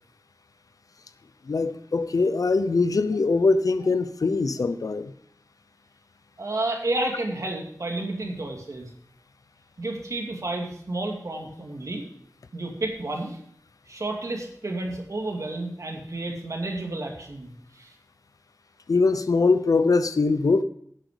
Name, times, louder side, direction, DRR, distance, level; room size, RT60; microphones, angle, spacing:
voice 1, 1.4-5.1 18.9-20.6, left 3 dB, 75° left, 0.7 m, -22 dB
voice 2, 6.4-8.9 9.8-12.0 12.5-13.4 13.9-17.9, right 2 dB, 60° right, 2.4 m, -31 dB
11.0 x 7.9 x 5.1 m
wide cardioid pair, 45°, 6 cm